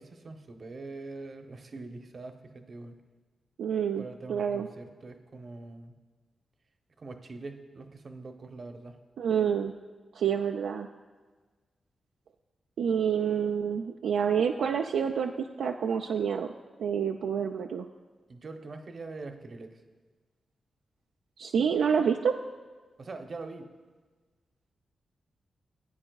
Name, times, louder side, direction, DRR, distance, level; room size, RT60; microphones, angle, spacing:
voice 1, 0.0-3.0 4.0-5.9 7.0-9.0 18.3-19.8 23.0-23.7, right 3 dB, 55° right, 6 dB, 0.8 m, -43 dB
voice 2, 3.6-4.7 9.2-9.7 10.1-10.9 12.8-16.5 16.8-17.8 21.4-22.3, right 7 dB, 85° right, 2 dB, 0.3 m, -28 dB
15.0 x 8.5 x 2.3 m, 1.4 s
cardioid pair, 50°, 0 cm